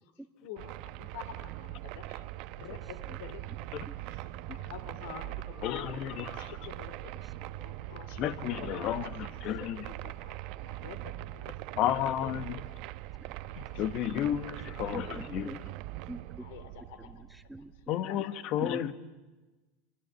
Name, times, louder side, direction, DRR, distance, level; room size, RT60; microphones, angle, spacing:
voice 1, 0.4-3.7 4.0-5.9 6.3-8.2 8.6-9.1 9.7-11.5 12.2-12.6 13.1-13.2 13.4-13.8 14.4-14.6 16.4-17.2 18.0-18.2, left 9 dB, 75° left, 3.1 m, -49 dB
Earthquake in cave, 0.6-17.9, right 16 dB, 55° right, 1.0 m, -42 dB
voice 2, 5.6-6.6 8.2-9.9 11.8-12.6 13.5-15.5 17.9-18.9, left 11 dB, 50° left, 1.5 m, -32 dB
voice 3, 14.9-15.6 16.1-16.4 17.0-17.9 18.6-18.9, right 1 dB, 5° right, 1.3 m, -43 dB
29.0 x 24.0 x 8.4 m
supercardioid pair, 135°, 0 cm